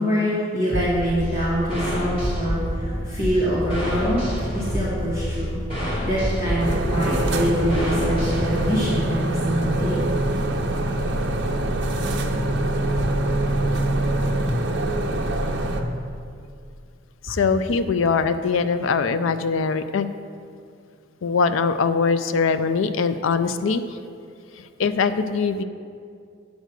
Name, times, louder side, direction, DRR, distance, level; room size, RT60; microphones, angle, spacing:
voice 1, 0.0-4.2 4.5-5.6 6.0-10.0, equal, 45° left, -10 dB, 2.1 m, -24 dB
sound 1, 0.7-8.7, equal, 30° left, 2.3 m, -28 dB
sound 2, 2.2-14.4, equal, 20° right, 0.9 m, -38 dB
sound 3, 6.6-15.8, right 1 dB, 60° right, 0.9 m, -24 dB
voice 2, 17.2-20.1 21.2-24.0 24.8-25.6, left 5 dB, 85° left, 11 dB, 0.4 m, -22 dB
9.2 x 5.2 x 6.4 m, 2.3 s
head